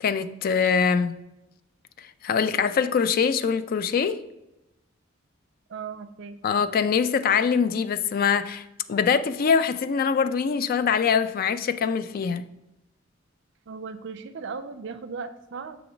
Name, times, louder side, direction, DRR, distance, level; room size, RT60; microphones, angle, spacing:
voice 1, 0.0-1.2 2.2-4.2 6.4-12.4, left 6 dB, 45° left, 0.3 m, -23 dB
voice 2, 5.7-6.4 13.7-15.8, right 5 dB, 60° right, 0.4 m, -37 dB
7.0 x 3.0 x 5.0 m
head